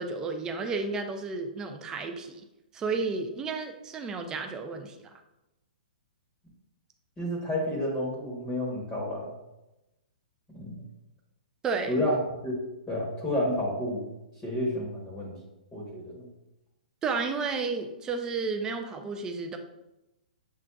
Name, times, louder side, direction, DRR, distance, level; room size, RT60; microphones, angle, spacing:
voice 1, 0.0-2.4 2.7-5.0 11.6-11.9 17.0-19.6, right 4 dB, 15° right, 5 dB, 0.4 m, -32 dB
voice 2, 7.2-9.3 10.5-10.8 11.9-14.0 14.4-15.4 15.7-16.2, left 1 dB, 10° left, -4 dB, 0.9 m, -30 dB
7.1 x 2.5 x 2.2 m, 0.94 s
hypercardioid pair, 155°, 5 cm